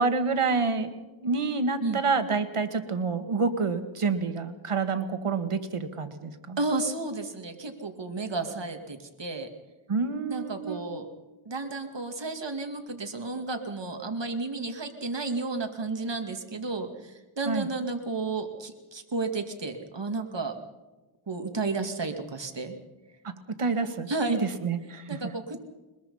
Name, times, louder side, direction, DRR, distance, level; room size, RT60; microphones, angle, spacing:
voice 1, 0.0-6.6 9.9-10.8 17.5-17.7 23.2-23.3 23.6-25.3, right 4 dB, 90° right, 9 dB, 1.8 m, -28 dB
voice 2, 6.6-9.5 10.3-11.1 11.5-20.6 21.3-22.7 24.1-24.4 25.1-25.6, right 3 dB, 60° right, 5 dB, 2.3 m, -32 dB
22.0 x 21.5 x 5.6 m, 1.1 s
wide cardioid pair, 45°, 50 cm